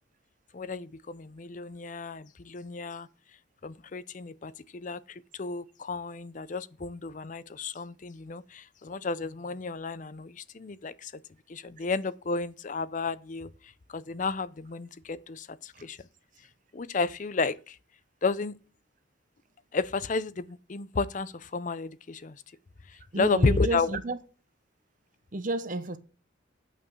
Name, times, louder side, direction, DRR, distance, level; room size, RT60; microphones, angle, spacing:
voice 1, 0.5-3.1 3.6-11.1 11.5-13.5 13.9-16.0 16.7-17.8 18.2-18.5 19.7-22.4 23.1-23.9, left 4 dB, 40° left, 0.5 m, -32 dB
voice 2, 23.1-24.2 25.3-26.0, right 2 dB, 40° right, 0.8 m, -31 dB
9.3 x 5.9 x 6.2 m
head